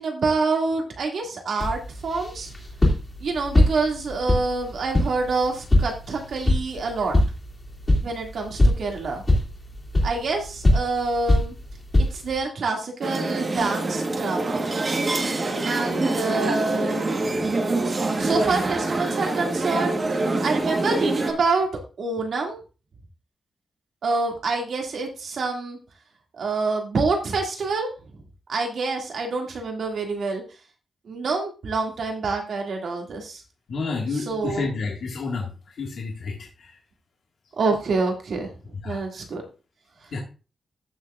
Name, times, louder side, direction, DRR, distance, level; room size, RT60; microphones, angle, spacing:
voice 1, 0.0-2.5 3.2-7.1 8.0-9.2 10.0-11.5 12.0-14.6 15.6-17.2 18.2-20.0 20.4-21.7 22.0-22.6 24.0-25.8 26.3-28.2 28.5-30.4 31.1-33.4 34.3-34.7 37.6-38.5 38.8-39.4, right 3 dB, 60° right, 1 dB, 2.4 m, -26 dB
sound 1, 1.6-12.4, left 1 dB, 20° left, 2.5 m, -24 dB
sound 2, 13.0-21.3, right 2 dB, 30° right, 1.4 m, -25 dB
voice 2, 33.7-36.8 38.8-39.0 40.1-40.2, left 4 dB, 65° left, -2 dB, 1.9 m, -30 dB
14.0 x 6.7 x 2.5 m, 0.33 s
wide cardioid pair, 180°, 0 cm